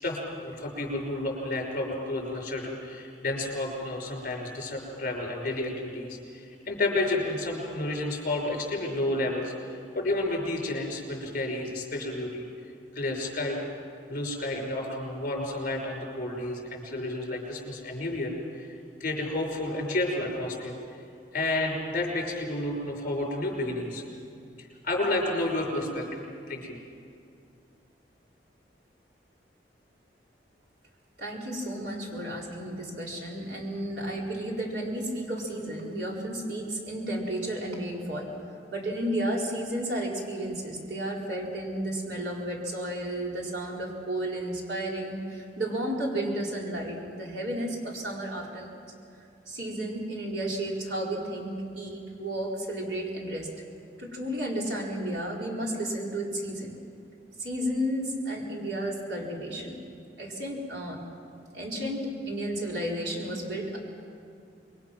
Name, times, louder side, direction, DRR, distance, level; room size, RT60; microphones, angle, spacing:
voice 1, 0.0-12.5 12.9-13.6 14.1-18.7 19.0-20.7 21.3-24.0 24.6-26.8, left 2 dB, 50° left, 0 dB, 5.8 m, -31 dB
voice 2, 31.2-38.3 38.7-48.8 49.5-53.5 54.0-56.7 57.4-59.8 60.2-61.0 61.5-63.8, right 1 dB, 80° right, -2 dB, 4.5 m, -32 dB
26.5 x 22.5 x 6.1 m, 2.4 s
head